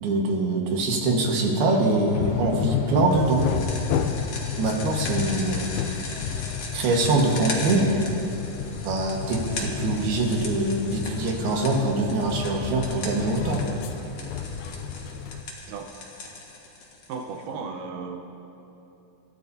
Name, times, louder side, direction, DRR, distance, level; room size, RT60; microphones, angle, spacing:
voice 1, 0.0-3.5 4.6-5.8 6.7-7.9 8.8-13.7, right 2 dB, 85° right, 0 dB, 3.5 m, -24 dB
sound 1, 2.1-15.4, left 7 dB, 80° left, 1.8 m, -31 dB
sound 2, 3.1-17.4, left 3 dB, 50° left, 2.3 m, -38 dB
voice 2, 17.1-18.2, right 5 dB, 70° right, 2 dB, 2.3 m, -35 dB
27.5 x 13.0 x 2.8 m, 2.9 s
omnidirectional pair, 4.3 m